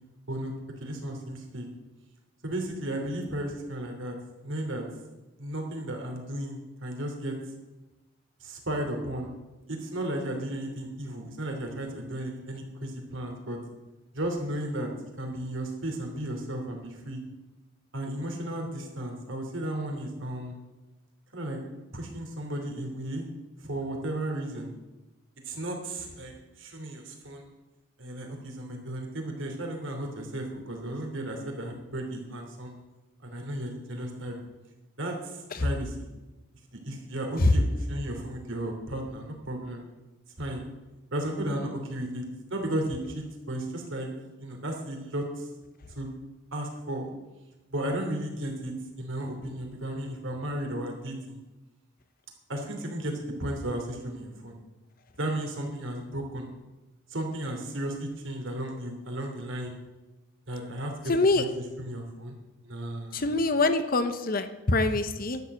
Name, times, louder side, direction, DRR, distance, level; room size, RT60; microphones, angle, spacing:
voice 1, 0.8-1.7 2.4-4.1 4.4-4.8 5.4-7.4 8.4-9.3 9.7-13.6 14.1-14.9 15.2-17.2 17.9-20.6 21.3-21.6 21.9-23.3 23.6-24.7 25.4-27.5 28.0-32.7 33.2-34.3 35.0-36.1 36.8-37.6 37.9-39.8 40.4-40.6 41.1-42.2 42.5-44.1 44.4-45.5 45.9-46.1 46.5-47.1 47.7-51.4 52.5-54.5 55.2-56.5 57.1-59.7 60.5-62.4 62.6-63.3, right 1 dB, 70° right, 2 dB, 2.9 m, -34 dB
voice 2, 61.1-61.4 63.1-65.4, left 2 dB, 45° left, 10 dB, 0.8 m, -24 dB
11.5 x 7.3 x 7.8 m, 1.1 s
head